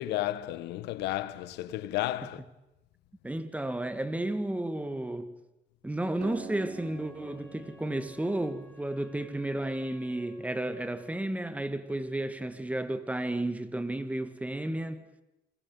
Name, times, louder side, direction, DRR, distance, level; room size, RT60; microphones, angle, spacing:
voice 1, 0.0-2.4, left 14 dB, 85° left, 1.3 m, -32 dB
voice 2, 3.2-5.4 5.8-15.0, right 1 dB, 10° right, 1.6 m, -32 dB
Acoustic guitar, 6.2-9.8, right 9 dB, 85° right, 1.9 m, -48 dB
Wind instrument woodwind instrument, 6.7-11.1, equal, 10° left, 3.6 m, -56 dB
29.5 x 23.0 x 5.5 m
cardioid pair, 110°, 17 cm